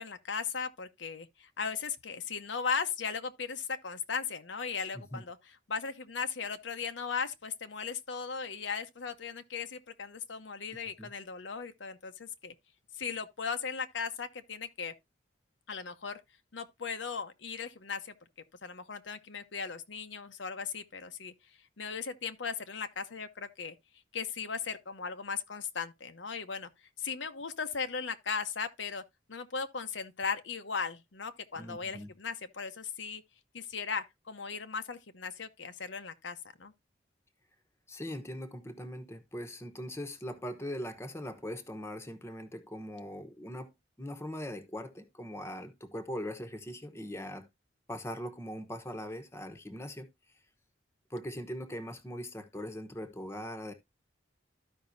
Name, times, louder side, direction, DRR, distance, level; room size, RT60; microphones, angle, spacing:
voice 1, 0.0-5.4 5.7-12.5 12.9-14.9 15.7-16.2 16.5-18.1 18.6-21.3 21.8-23.7 24.1-26.7 27.0-29.0 29.3-33.2 33.5-36.7, left 5 dB, 80° left, 0.9 m, -37 dB
voice 2, 31.6-32.1 37.9-43.7 44.0-47.5 47.9-50.1 51.1-53.7, equal, 15° left, 0.9 m, -41 dB
13.5 x 5.4 x 2.6 m
head